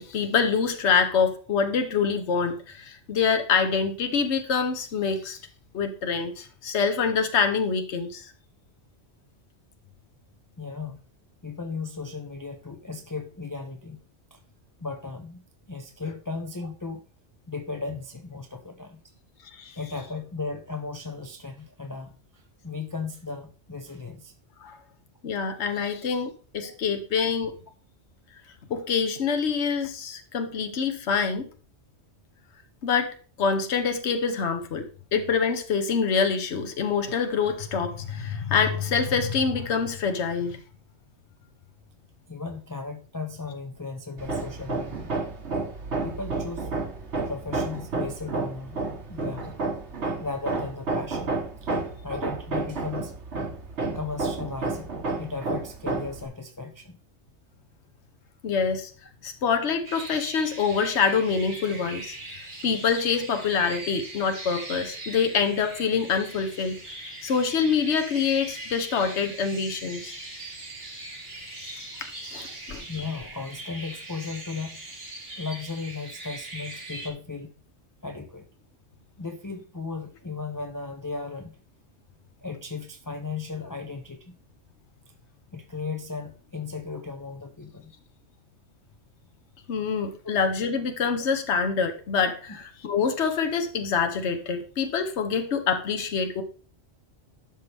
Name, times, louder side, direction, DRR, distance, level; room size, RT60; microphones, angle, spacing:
voice 1, 0.0-5.4 5.7-8.3 19.5-19.7 24.6-24.8 25.2-27.5 28.7-31.5 32.8-40.6 58.4-58.9 59.2-62.1 62.6-66.8 67.2-70.1 71.4-71.8 72.3-72.8 89.7-96.4, left 6 dB, 75° left, 7 dB, 1.2 m, -26 dB
voice 2, 10.6-11.0 11.4-14.0 14.3-14.4 14.8-15.4 15.7-17.0 17.5-19.0 19.7-24.3 25.8-25.9 26.6-26.7 42.3-45.1 46.0-46.7 47.3-48.8 49.1-49.6 50.2-51.3 51.6-51.7 52.0-53.1 53.9-54.9 55.2-57.0 72.9-74.9 75.4-77.5 78.0-78.4 79.2-81.6 82.4-84.3 85.5-87.9 90.2-90.4 92.5-92.6, left 4 dB, 20° left, 5 dB, 0.6 m, -36 dB
Hammer, 44.2-56.2, right 3 dB, 75° right, 1.5 m, -31 dB
sound 1, 59.8-77.1, right 2 dB, 60° right, 2.6 m, -40 dB
12.5 x 5.6 x 3.4 m, 0.39 s
omnidirectional pair, 1.2 m